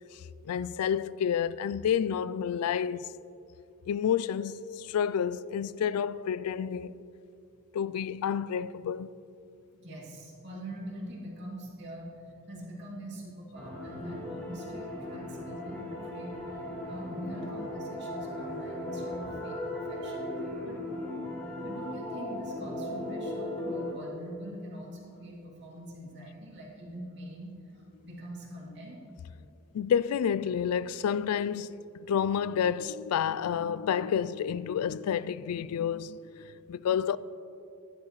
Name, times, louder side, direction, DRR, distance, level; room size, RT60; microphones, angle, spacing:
voice 1, 0.4-3.1 3.9-7.0 7.7-9.1 29.7-31.7 32.1-37.2, left 8 dB, 85° left, 0.3 m, -29 dB
voice 2, 9.8-12.1 12.5-16.4 16.9-20.8 21.6-29.0, right 1 dB, 50° right, 2.6 m, -43 dB
sound 1, 13.5-23.9, left 1 dB, 5° left, 2.7 m, -37 dB
15.0 x 11.0 x 3.1 m
head